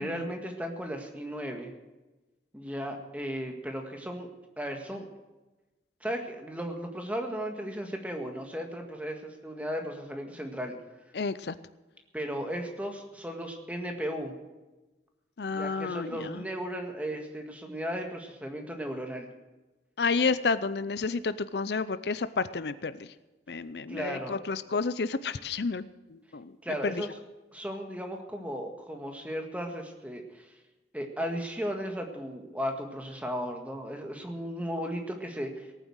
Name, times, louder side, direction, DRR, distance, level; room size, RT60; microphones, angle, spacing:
voice 1, 0.0-1.7 2.5-4.3 4.6-5.1 6.0-10.8 12.1-14.3 15.5-19.3 20.2-20.3 23.9-24.4 26.6-27.1 27.5-30.6 30.9-35.7, equal, 10° right, 3 dB, 1.8 m, -35 dB
voice 2, 11.1-11.5 15.4-16.4 20.0-23.1 23.5-26.5 26.8-27.1, left 4 dB, 70° left, 15 dB, 0.6 m, -31 dB
18.5 x 9.2 x 6.3 m, 1.1 s
head